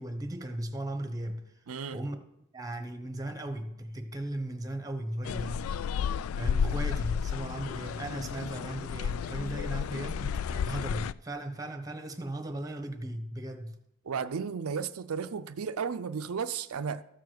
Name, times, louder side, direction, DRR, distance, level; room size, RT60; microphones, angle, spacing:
voice 1, 0.0-1.5 1.9-2.2 2.5-5.7 6.4-13.8, right 1 dB, 15° right, 1.1 m, -37 dB
voice 2, 1.7-2.0 14.1-17.0, right 6 dB, 90° right, 0.5 m, -34 dB
sound 1, 5.2-11.1, left 7 dB, 75° left, 0.3 m, -32 dB
13.5 x 4.8 x 7.7 m
head